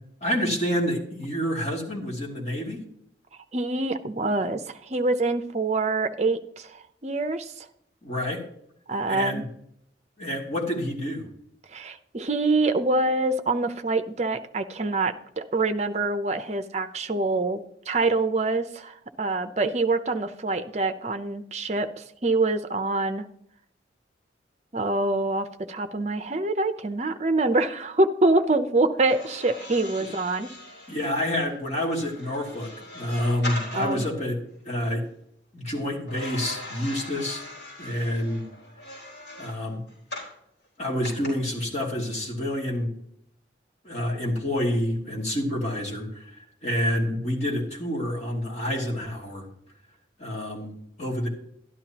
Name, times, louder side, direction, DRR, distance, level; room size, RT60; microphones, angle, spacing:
voice 1, 0.2-2.8 8.0-8.4 9.1-9.4 10.2-11.3 30.0-30.1 30.9-34.4 34.6-35.0 35.5-37.4 37.8-38.4 39.4-39.8 40.8-42.9 43.8-49.5 50.2-51.3, left 1 dB, 35° left, -2 dB, 2.6 m, -28 dB
voice 2, 3.5-7.7 8.9-9.4 11.7-17.6 17.9-23.2 24.7-30.5 33.7-34.0, right 2 dB, 35° right, 8 dB, 0.6 m, -25 dB
sound 1, 29.0-34.1 36.1-40.4 41.0-41.3, left 1 dB, 65° left, 4.4 m, -40 dB
12.5 x 11.0 x 2.9 m, 0.74 s
head